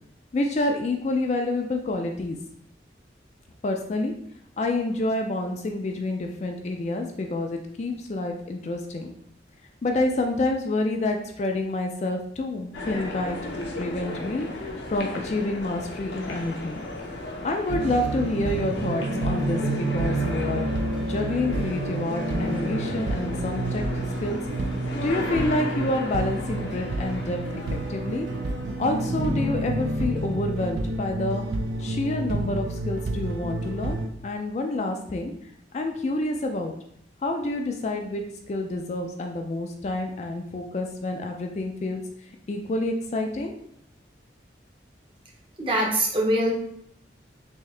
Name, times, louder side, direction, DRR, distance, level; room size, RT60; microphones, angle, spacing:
voice 1, 0.3-2.4 3.6-4.1 4.6-9.1 9.8-13.4 13.8-16.8 17.4-20.7 21.1-23.8 24.2-24.4 25.0-27.4 27.7-28.3 28.8-31.4 31.8-35.3 35.7-36.7 37.2-42.0 42.5-43.5, left 2 dB, 35° left, 3 dB, 0.3 m, -28 dB
sound 1, 12.7-29.3, left 2 dB, 70° left, 0.6 m, -36 dB
sound 2, 17.7-34.1, right 2 dB, 70° right, 0.4 m, -29 dB
voice 2, 45.6-46.5, right 1 dB, 30° right, -1 dB, 0.7 m, -23 dB
3.6 x 2.8 x 3.2 m, 0.69 s
head